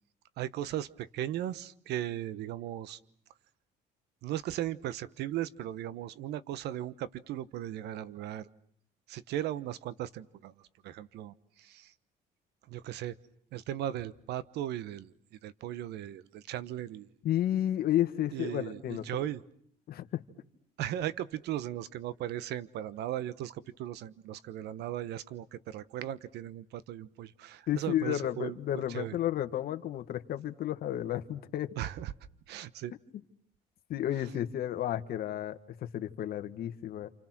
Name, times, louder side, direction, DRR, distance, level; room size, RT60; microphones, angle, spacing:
voice 1, 0.4-3.0 4.2-8.5 9.1-10.5 10.8-11.9 12.7-13.1 13.5-15.1 15.4-17.1 18.3-19.4 20.8-29.2 31.8-32.1 32.5-32.9, right 12 dB, 80° right, 16 dB, 1.2 m, -37 dB
voice 2, 17.2-19.0 19.9-20.2 27.7-31.7 33.9-37.1, left 12 dB, 65° left, 8 dB, 1.8 m, -32 dB
29.0 x 28.0 x 6.2 m, 0.64 s
cardioid pair, 110°, 17 cm